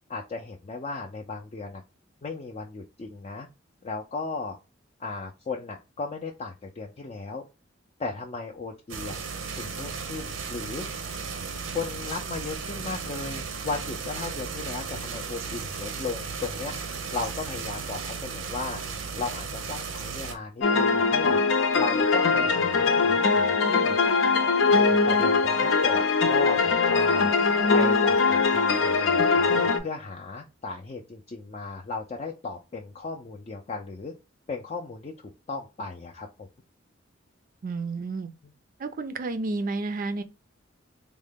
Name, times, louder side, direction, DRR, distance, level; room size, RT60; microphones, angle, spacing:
voice 1, 0.1-1.8 2.2-3.5 3.8-4.6 5.0-7.4 8.0-9.2 9.5-10.9 11.7-16.7 17.1-18.8 19.1-21.4 21.8-24.0 24.7-27.3 27.7-34.1 34.5-36.5, left 4 dB, 35° left, 0.4 m, -36 dB
sound 1, 8.9-20.3, right 5 dB, 80° right, 0.7 m, -35 dB
sound 2, 20.6-29.8, left 4 dB, 80° left, 0.6 m, -22 dB
voice 2, 37.6-38.3 38.8-40.2, right 3 dB, 45° right, 0.4 m, -31 dB
3.7 x 2.1 x 3.5 m
head